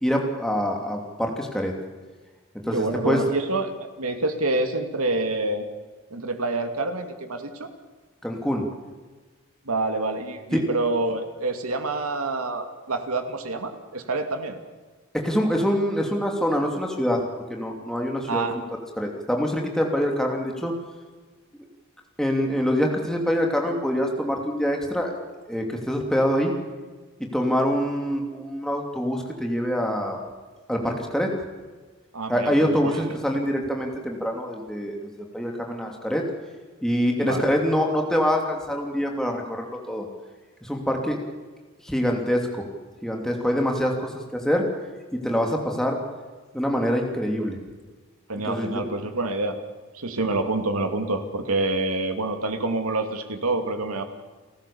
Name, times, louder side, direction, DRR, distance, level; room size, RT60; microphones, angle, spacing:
voice 1, 0.0-1.7 2.7-3.2 8.2-8.7 10.5-10.7 15.1-17.2 17.5-18.4 19.0-20.7 22.2-25.1 25.5-26.5 27.3-30.2 30.7-31.3 32.3-35.1 35.3-36.2 36.8-40.1 40.6-41.2 41.8-42.5 43.0-44.7 45.1-46.0 46.5-47.6 48.5-48.7, equal, ahead, 1 dB, 2.8 m, -25 dB
voice 2, 2.7-5.6 6.1-7.7 9.7-14.6 18.3-18.6 32.1-33.0 37.2-37.5 48.3-49.6 49.9-54.0, right 2 dB, 90° right, 6 dB, 2.6 m, -27 dB
29.5 x 14.0 x 7.1 m, 1.3 s
head